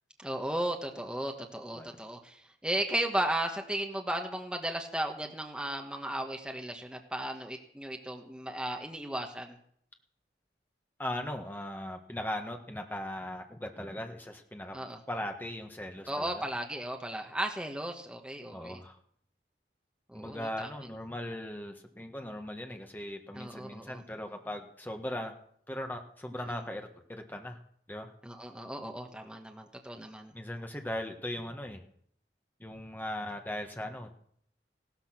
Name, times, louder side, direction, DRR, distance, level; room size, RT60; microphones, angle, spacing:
voice 1, 0.2-9.6 14.7-15.0 16.1-18.8 20.1-20.7 23.3-24.0 26.3-26.6 28.2-30.3, right 1 dB, 5° right, 3 dB, 1.4 m, -35 dB
voice 2, 11.0-14.8 15.1-16.4 18.5-19.0 20.1-25.3 25.7-27.6 27.9-28.1 30.3-31.8 32.6-34.1, left 1 dB, 10° left, 4 dB, 1.6 m, -39 dB
16.5 x 13.0 x 6.0 m, 0.65 s
head